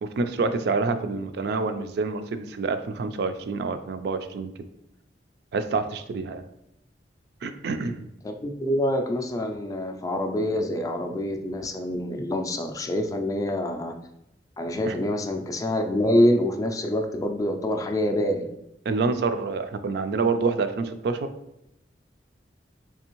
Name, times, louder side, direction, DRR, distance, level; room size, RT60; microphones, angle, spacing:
voice 1, 0.0-4.5 5.5-6.4 7.4-8.1 14.9-15.0 18.9-21.3, right 4 dB, 65° right, 9 dB, 0.3 m, -27 dB
voice 2, 8.2-13.9 14.6-18.5, left 1 dB, 20° left, 5 dB, 0.3 m, -26 dB
3.4 x 3.2 x 2.9 m, 0.82 s
head